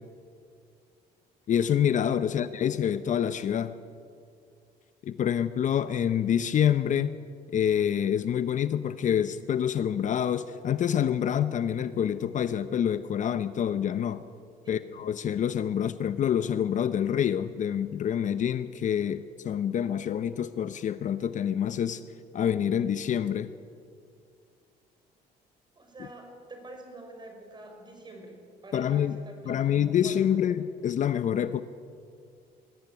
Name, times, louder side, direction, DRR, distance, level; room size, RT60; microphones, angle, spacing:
voice 1, 1.5-3.8 5.0-7.2 7.5-14.2 14.7-22.0 22.3-23.5 28.7-29.2 29.5-31.6, left 9 dB, 45° left, 13 dB, 0.7 m, -27 dB
voice 2, 2.3-2.7 14.6-14.9 25.7-28.4 28.6-30.4, right 1 dB, 25° right, 4 dB, 5.0 m, -46 dB
21.0 x 14.0 x 9.6 m, 2.4 s
cardioid pair, 110°, 17 cm